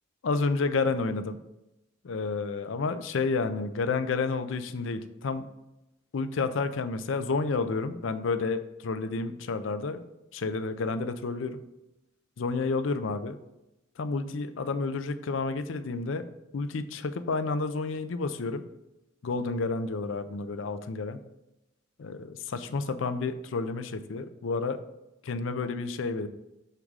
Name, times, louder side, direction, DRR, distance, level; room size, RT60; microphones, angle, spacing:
voice 1, 0.2-1.4 2.0-5.5 6.1-10.0 10.3-11.6 12.4-13.4 14.0-16.2 16.5-18.6 19.2-21.2 22.0-24.8 25.2-26.3, left 4 dB, 70° left, 11 dB, 0.5 m, -30 dB
6.7 x 3.6 x 4.7 m, 0.93 s
head